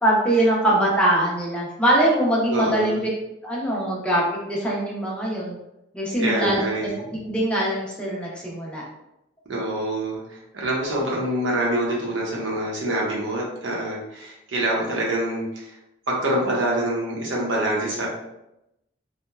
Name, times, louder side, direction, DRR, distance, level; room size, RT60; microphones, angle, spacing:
voice 1, 0.0-3.1 3.4-5.6 5.9-6.9 7.2-8.8, right 1 dB, 5° left, -5 dB, 0.5 m, -22 dB
voice 2, 2.5-3.0 6.1-7.1 9.5-15.8 16.1-18.1, right 1 dB, 85° right, -3 dB, 0.7 m, -26 dB
2.9 x 2.1 x 2.2 m, 0.88 s
head